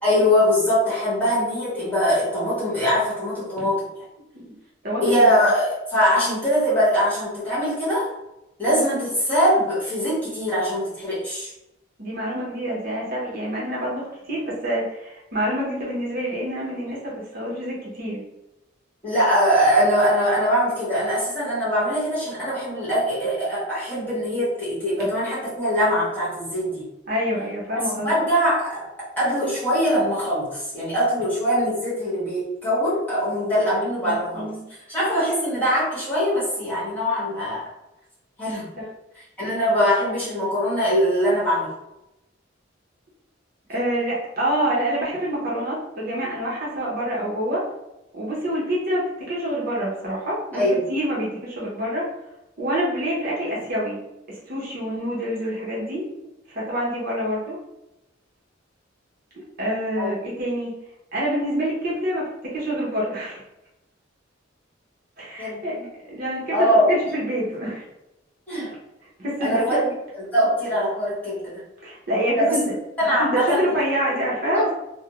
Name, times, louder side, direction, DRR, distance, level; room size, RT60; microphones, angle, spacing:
voice 1, 0.0-3.8 5.0-8.1 8.6-11.5 19.0-26.8 28.0-28.9 29.2-34.5 34.9-37.6 38.4-38.7 39.4-41.7 50.5-50.8 60.0-60.1 65.4-65.9 66.5-66.9 68.5-68.7 69.4-69.8 70.1-71.5 72.4-72.6 73.0-73.6 74.5-74.7, equal, 10° left, -9 dB, 1.1 m, -22 dB
voice 2, 4.8-5.3 12.0-18.2 25.0-25.1 27.1-28.2 34.0-34.6 38.8-38.9 43.7-47.6 48.1-50.6 50.9-52.0 52.6-54.0 54.3-56.0 56.5-57.6 59.6-60.7 61.1-63.4 65.2-65.8 66.1-67.8 69.2-69.9 71.8-72.6 73.2-74.7, equal, 50° right, -6 dB, 0.7 m, -26 dB
2.4 x 2.0 x 2.9 m, 0.92 s
head